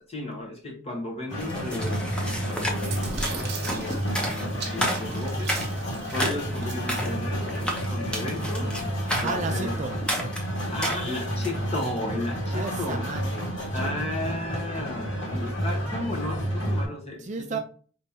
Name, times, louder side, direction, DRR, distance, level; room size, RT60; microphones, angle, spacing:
voice 1, 0.1-5.5 6.1-8.7 9.2-9.7 10.7-13.1 13.7-17.6, left 2 dB, 30° left, 1.3 m, -34 dB
sound 1, 1.3-16.9, equal, 60° left, 1.7 m, -30 dB
sound 2, 1.4-11.6, equal, 5° left, 0.9 m, -32 dB
sound 3, 2.4-7.2, right 6 dB, 50° right, 0.8 m, -41 dB
voice 2, 6.3-6.6 9.1-10.0 12.5-14.2 17.2-17.6, right 4 dB, 35° right, 0.4 m, -34 dB
5.3 x 3.1 x 2.8 m
head